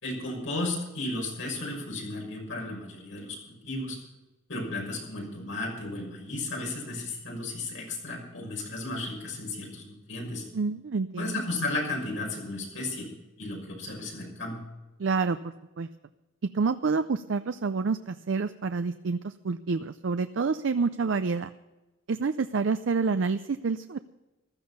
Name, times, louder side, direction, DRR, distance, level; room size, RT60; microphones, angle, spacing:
voice 1, 0.0-4.0 4.5-10.5 11.2-13.1 13.4-14.6, left 2 dB, 75° left, -1 dB, 6.1 m, -34 dB
voice 2, 10.5-11.4 15.0-15.9 16.5-21.5 22.1-24.0, right 4 dB, 70° right, 11 dB, 0.5 m, -28 dB
15.5 x 12.5 x 5.5 m, 1.1 s
head